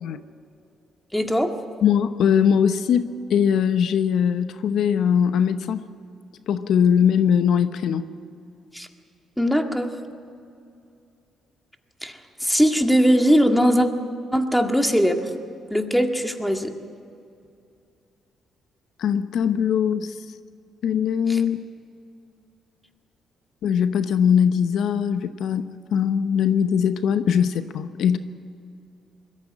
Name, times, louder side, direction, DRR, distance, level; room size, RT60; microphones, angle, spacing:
voice 1, 1.1-1.5 8.7-8.9 9.4-9.9 12.0-13.9 14.3-15.2 15.7-16.7 21.3-21.4, equal, 5° left, 5 dB, 1.8 m, -20 dB
voice 2, 1.8-5.8 6.5-8.0 19.0-20.2 20.8-21.6 23.6-28.2, left 8 dB, 75° left, 11 dB, 0.8 m, -21 dB
21.5 x 14.0 x 10.0 m, 2.5 s
cardioid pair, 90°, 0 cm